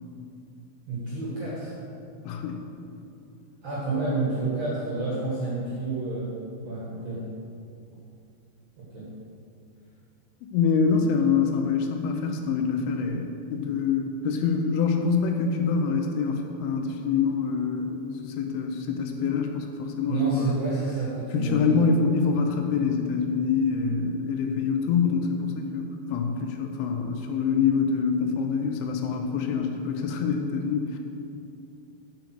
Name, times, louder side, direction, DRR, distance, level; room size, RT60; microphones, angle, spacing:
voice 1, 0.9-1.8 3.6-6.4 6.6-7.3 8.9-9.1 20.1-21.8, right 3 dB, 55° right, -7 dB, 2.0 m, -29 dB
voice 2, 2.3-2.6 10.5-18.0 18.2-20.5 21.3-31.0, left 5 dB, 85° left, 4 dB, 3.4 m, -25 dB
9.1 x 7.1 x 6.1 m, 2.6 s
omnidirectional pair, 5.6 m